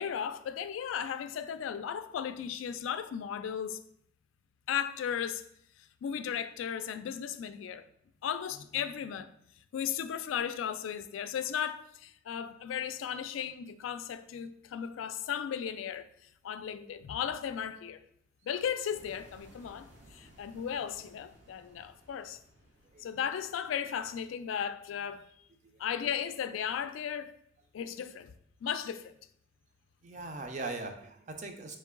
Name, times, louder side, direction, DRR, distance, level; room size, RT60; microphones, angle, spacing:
voice 1, 0.0-3.8 4.7-5.4 6.0-7.8 8.2-9.3 9.7-16.1 16.4-18.0 18.4-22.4 23.0-25.3 25.8-27.3 27.7-28.3 28.6-29.1, left 8 dB, 85° left, 0.3 m, -35 dB
sound 1, 18.9-25.1, right 1 dB, 65° right, 1.3 m, -60 dB
voice 2, 30.0-31.8, right 3 dB, 40° right, 0.5 m, -40 dB
3.7 x 3.2 x 3.6 m
head